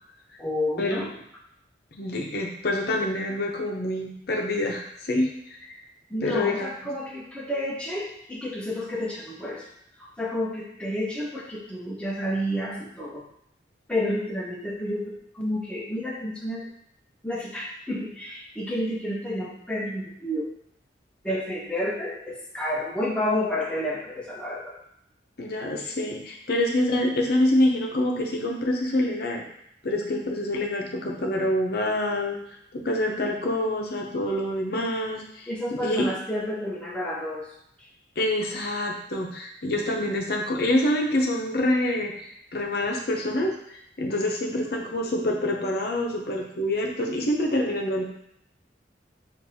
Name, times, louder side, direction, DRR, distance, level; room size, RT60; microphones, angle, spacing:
voice 1, 0.4-1.1 6.1-9.7 10.0-13.2 13.9-16.7 17.2-20.5 21.2-24.7 35.5-37.5 37.8-37.9 45.0-45.1, left 1 dB, 5° left, -4 dB, 0.5 m, -30 dB
voice 2, 1.9-5.8 6.2-6.7 25.4-29.4 29.8-32.4 32.7-36.1 38.2-48.0, left 1 dB, 55° left, 0 dB, 0.7 m, -26 dB
6.4 x 2.5 x 2.7 m, 0.74 s
head